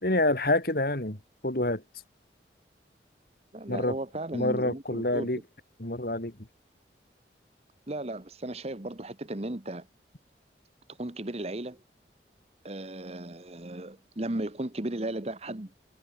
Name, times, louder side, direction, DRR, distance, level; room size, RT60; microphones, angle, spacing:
voice 1, 0.0-1.2 1.4-1.8 3.7-3.9 4.3-5.4 5.8-6.3, left 1 dB, 55° left, 3.7 m, -27 dB
voice 2, 3.5-5.3 7.9-9.9 11.0-11.8 12.6-15.7, right 1 dB, 35° right, 1.3 m, -35 dB
head